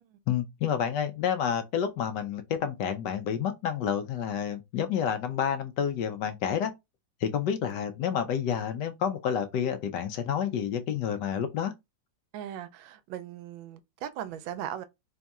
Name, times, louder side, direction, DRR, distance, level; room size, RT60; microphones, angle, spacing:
voice 1, 0.3-6.7 7.2-11.7, left 8 dB, 75° left, 1.1 m, -29 dB
voice 2, 12.3-14.8, right 10 dB, 85° right, 1.3 m, -38 dB
3.5 x 2.3 x 4.1 m
omnidirectional pair, 2.1 m